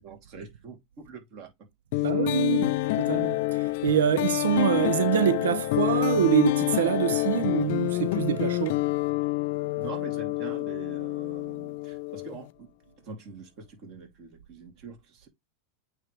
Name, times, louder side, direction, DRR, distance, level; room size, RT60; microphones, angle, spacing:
voice 1, 0.0-1.5 2.0-2.1 9.8-12.7 13.0-15.3, right 4 dB, 45° right, 2.9 m, -44 dB
sound 1, 1.9-12.5, left 19 dB, 65° left, 0.6 m, -27 dB
voice 2, 2.0-8.8, right 11 dB, 90° right, 0.4 m, -25 dB
8.9 x 3.5 x 3.2 m
supercardioid pair, 135°, 0 cm